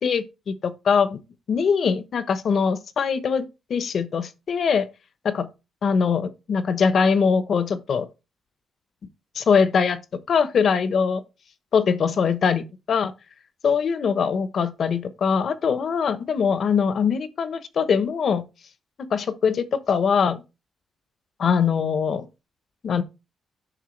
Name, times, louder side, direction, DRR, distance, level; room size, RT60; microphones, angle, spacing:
voice 1, 0.0-1.2 1.5-4.9 5.2-5.5 5.8-8.1 9.3-10.0 10.3-11.2 11.7-13.1 13.6-18.4 19.0-20.4 21.4-22.3 22.8-23.0, left 6 dB, 55° left, 1.0 m, -22 dB
10.0 x 6.5 x 3.3 m
cardioid pair, 120°, 0 cm